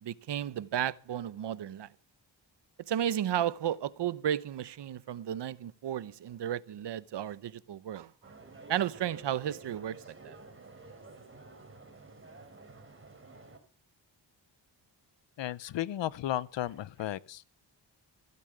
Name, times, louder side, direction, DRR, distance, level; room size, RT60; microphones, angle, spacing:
voice 1, 0.0-1.9 2.9-8.1 8.7-10.0 10.2-10.4, right 10 dB, 70° right, 0.9 m, -33 dB
sound 1, 8.2-13.6, right 3 dB, 30° right, 3.9 m, -51 dB
voice 2, 15.4-17.4, left 12 dB, 80° left, 0.8 m, -34 dB
16.0 x 8.5 x 7.8 m
wide cardioid pair, 105°, 43 cm